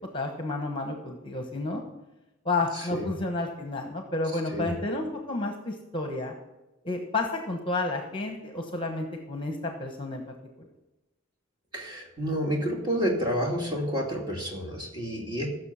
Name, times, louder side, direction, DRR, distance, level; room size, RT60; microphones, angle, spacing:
voice 1, 0.1-1.8 2.4-6.3 6.8-10.2 10.6-10.7, left 2 dB, 25° left, 3 dB, 1.1 m, -31 dB
voice 2, 2.8-3.1 4.5-4.7 11.7-15.5, equal, 20° right, -1 dB, 2.3 m, -29 dB
15.5 x 6.6 x 5.7 m, 1.0 s
head